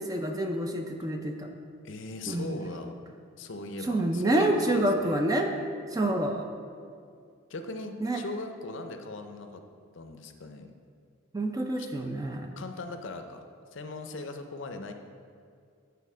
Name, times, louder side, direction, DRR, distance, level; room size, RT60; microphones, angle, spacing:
voice 1, 0.0-1.5 2.3-2.6 3.8-5.5 5.9-6.5 8.0-8.2 11.3-12.5, right 1 dB, 15° right, 4 dB, 0.4 m, -28 dB
voice 2, 1.8-2.9 3.4-5.2 7.5-9.6 9.9-10.7 11.8-11.9 12.6-13.4 13.7-14.9, left 3 dB, 60° left, 6 dB, 0.5 m, -39 dB
8.4 x 4.0 x 5.5 m, 2.3 s
head